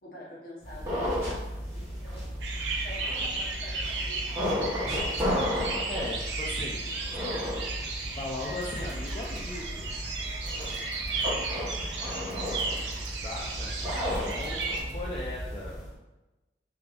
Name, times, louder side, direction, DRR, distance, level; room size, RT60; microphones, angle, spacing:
voice 1, 0.0-2.3 2.8-5.7 14.4-14.6, left 1 dB, 50° left, -5 dB, 1.0 m, -48 dB
sound 1, 0.6-15.9, equal, 20° right, 1.1 m, -34 dB
sound 2, 2.4-14.8, right 3 dB, 85° right, 0.5 m, -35 dB
voice 2, 5.9-6.9 8.1-10.3 13.1-13.7 14.1-15.7, left 2 dB, 30° left, -5 dB, 0.3 m, -38 dB
sound 3, 8.4-15.2, right 2 dB, 65° right, 1.0 m, -54 dB
3.3 x 3.1 x 2.4 m, 1.1 s
head